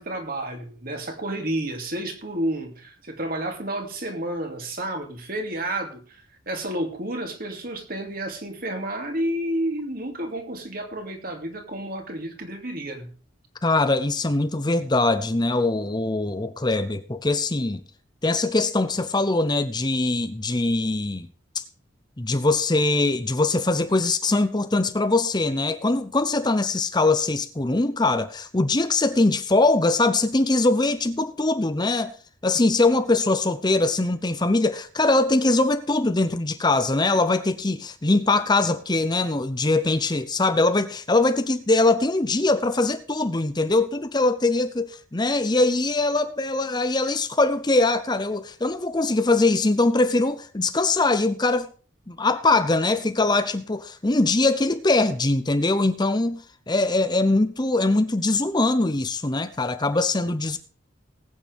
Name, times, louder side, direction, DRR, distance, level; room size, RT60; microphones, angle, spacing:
voice 1, 0.0-13.1, right 1 dB, 45° right, 2.8 m, -30 dB
voice 2, 13.6-17.8 18.2-21.3 22.2-32.1 32.4-51.7 52.1-60.6, left 2 dB, 20° left, 0.7 m, -22 dB
19.5 x 8.9 x 3.5 m
head